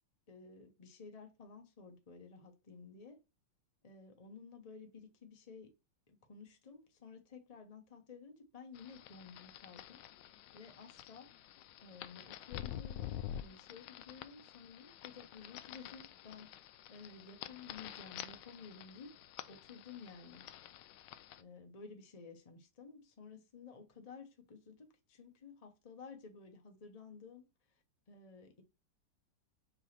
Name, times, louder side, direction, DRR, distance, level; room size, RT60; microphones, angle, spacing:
voice 1, 0.3-3.2 3.8-5.7 6.1-10.0 10.5-11.3 11.8-19.1 19.5-20.4 21.4-27.8 28.1-28.6, left 5 dB, 30° left, 0.8 m, -54 dB
sound 1, 8.7-21.4, left 11 dB, 90° left, 1.3 m, -49 dB
4.9 x 3.9 x 5.7 m
omnidirectional pair, 1.9 m